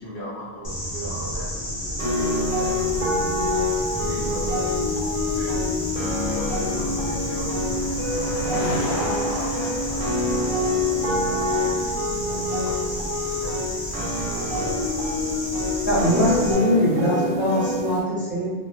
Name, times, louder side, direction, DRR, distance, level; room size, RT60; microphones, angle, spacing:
voice 1, 0.0-3.5 3.9-4.7 5.3-5.6 6.3-8.4 8.7-10.1 10.9-12.0 12.2-14.7, equal, 65° left, -6 dB, 0.8 m, -38 dB
sound 1, 0.6-16.5, left 1 dB, 35° left, 0.5 m, -31 dB
sound 2, 2.0-18.0, left 2 dB, 60° right, 0.7 m, -26 dB
sound 3, 3.0-16.5, right 1 dB, 90° left, 1.0 m, -37 dB
voice 2, 15.8-18.6, equal, 10° right, -11 dB, 0.7 m, -22 dB
2.1 x 2.0 x 2.9 m, 1.3 s
omnidirectional pair, 1.1 m